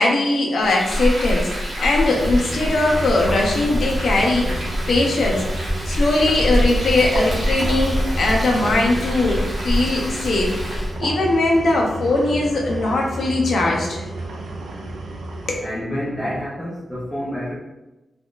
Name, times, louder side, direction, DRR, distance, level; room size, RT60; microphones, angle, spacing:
voice 1, 0.0-1.5 1.8-5.5 5.9-10.6 11.0-14.0 15.5-15.6, left 2 dB, 55° left, -1 dB, 0.6 m, -20 dB
Frying (food), 0.6-11.0, equal, 30° right, 1.0 m, -25 dB
sound 1, 2.0-15.6, right 1 dB, 85° right, 0.5 m, -31 dB
voice 2, 15.6-17.5, equal, ahead, -9 dB, 0.6 m, -28 dB
3.5 x 2.4 x 2.3 m, 1.0 s
wide cardioid pair, 170°, 0 cm